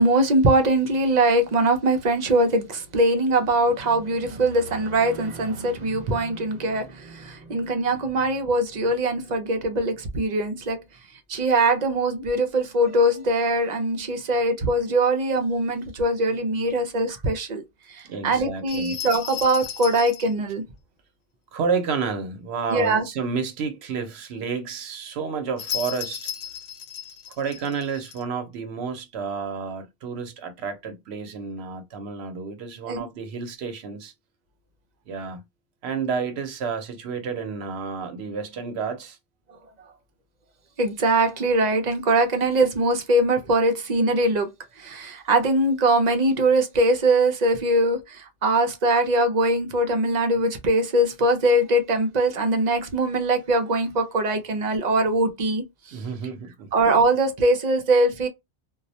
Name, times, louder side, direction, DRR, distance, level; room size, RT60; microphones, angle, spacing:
voice 1, 0.0-10.8 11.3-17.6 17.9-20.6 22.7-23.1 32.9-33.0 40.8-44.5 44.8-56.0 56.7-58.3, right 1 dB, 50° right, 0.6 m, -22 dB
voice 2, 18.0-19.0 21.5-26.3 27.4-34.1 35.1-35.4 35.8-39.2 55.9-56.7, right 5 dB, 85° right, 0.9 m, -30 dB
sound 1, 18.7-20.3 25.6-28.2, left 9 dB, 85° left, 0.9 m, -35 dB
2.3 x 2.0 x 2.7 m
omnidirectional pair, 1.1 m